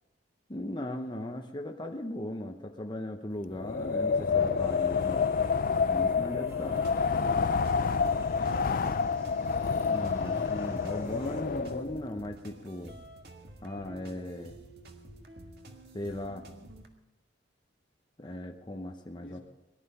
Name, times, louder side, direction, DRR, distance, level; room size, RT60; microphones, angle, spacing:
voice 1, 0.5-5.3 5.9-6.9 9.9-13.0 13.6-14.5 15.9-16.4 18.2-19.4, left 1 dB, 25° left, 2 dB, 0.9 m, -38 dB
Wind, 3.6-12.0, left 5 dB, 50° left, 0.4 m, -28 dB
sound 1, 4.6-11.4, right 1 dB, 15° right, 2.6 m, -49 dB
sound 2, 6.5-16.9, right 1 dB, 55° right, 1.8 m, -50 dB
voice 2, 8.0-9.4 19.2-19.4, left 1 dB, 70° left, 0 dB, 2.9 m, -51 dB
19.0 x 12.0 x 5.6 m, 0.96 s
head